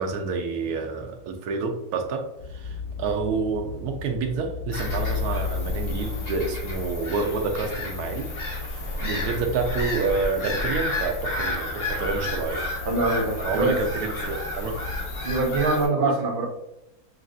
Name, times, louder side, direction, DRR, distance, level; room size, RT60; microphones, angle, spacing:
voice 1, 0.0-2.2 2.5-8.3 9.1-12.7 13.4-14.8 16.0-16.2, right 4 dB, 85° right, 3 dB, 1.1 m, -28 dB
sound 1, 2.4-15.5, left 5 dB, 70° left, 0.3 m, -36 dB
Bird vocalization bird call bird song / Gull seagull, 4.7-15.8, left 1 dB, 55° left, 1.5 m, -32 dB
voice 2, 12.8-13.8 15.2-16.5, right 2 dB, 45° right, 0 dB, 0.9 m, -24 dB
6.2 x 2.3 x 2.5 m, 0.83 s
omnidirectional pair, 1.6 m